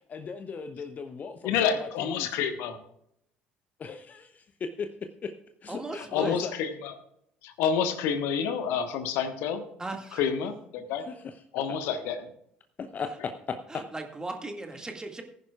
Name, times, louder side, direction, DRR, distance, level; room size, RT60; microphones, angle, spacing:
voice 1, 0.0-2.3 3.8-5.4 5.6-6.5 11.1-11.3 12.8-13.9, left 5 dB, 35° left, 8 dB, 0.8 m, -37 dB
voice 2, 1.4-2.8 6.1-6.9 7.4-9.6 10.1-11.1 11.5-12.2, left 7 dB, 60° left, 9 dB, 1.3 m, -28 dB
voice 3, 5.7-6.4 9.8-10.3 13.7-15.2, right 2 dB, 15° right, 4 dB, 2.0 m, -38 dB
19.0 x 10.5 x 2.4 m, 0.72 s
figure-of-eight pair, 55°, 5 cm